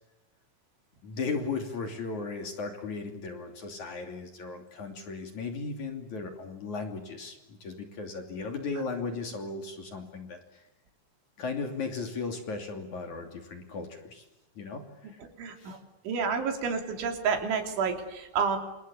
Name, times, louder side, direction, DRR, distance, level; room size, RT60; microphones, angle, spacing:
voice 1, 1.0-10.6 11.4-14.3 14.6-15.2 15.6-15.8, left 4 dB, 45° left, 4 dB, 3.7 m, -36 dB
voice 2, 15.4-15.8 16.1-18.6, right 5 dB, 80° right, 4 dB, 5.8 m, -29 dB
28.5 x 28.0 x 7.1 m, 0.98 s
omnidirectional pair, 5.4 m